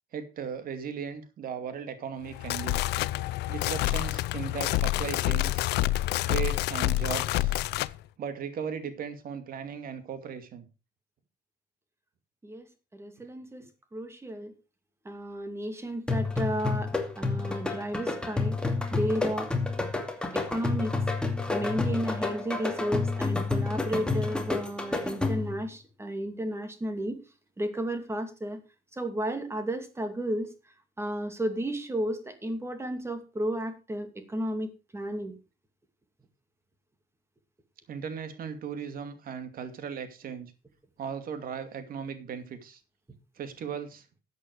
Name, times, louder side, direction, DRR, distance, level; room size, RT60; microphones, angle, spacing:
voice 1, 0.1-2.8 3.5-5.7 6.3-7.6 8.2-10.7 37.9-40.5 41.0-42.8 43.4-44.1, right 7 dB, 60° right, 9 dB, 2.5 m, -37 dB
sound 1, 2.3-7.9, left 17 dB, 80° left, 0.6 m, -28 dB
voice 2, 12.9-13.7 13.9-14.5 15.0-16.9 17.2-19.5 20.3-20.9 21.5-27.2 27.6-28.6 29.0-30.5 31.0-34.7 34.9-35.3, right 1 dB, 15° right, 8 dB, 2.5 m, -33 dB
sound 2, 16.1-25.6, left 3 dB, 5° left, 2.5 m, -29 dB
13.5 x 8.5 x 4.8 m, 0.31 s
cardioid pair, 110°, 17 cm